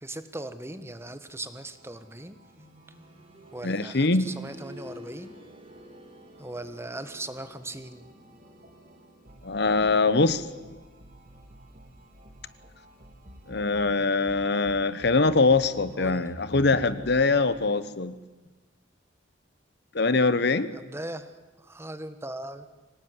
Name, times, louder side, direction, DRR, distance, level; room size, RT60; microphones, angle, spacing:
voice 1, 0.0-2.4 3.5-5.4 6.4-8.1 16.0-16.3 20.7-21.3 21.6-22.7, right 1 dB, 15° right, 11 dB, 1.4 m, -39 dB
sound 1, 1.3-17.2, equal, 45° right, 3.4 m, -51 dB
sound 2, 2.5-13.3 13.6-13.7 14.6-14.7, left 1 dB, 30° right, 5.4 m, -51 dB
voice 2, 3.6-4.3 9.4-10.4 13.5-18.2 19.9-20.7, left 3 dB, 60° left, 14 dB, 1.1 m, -23 dB
25.0 x 18.5 x 9.7 m, 1.2 s
head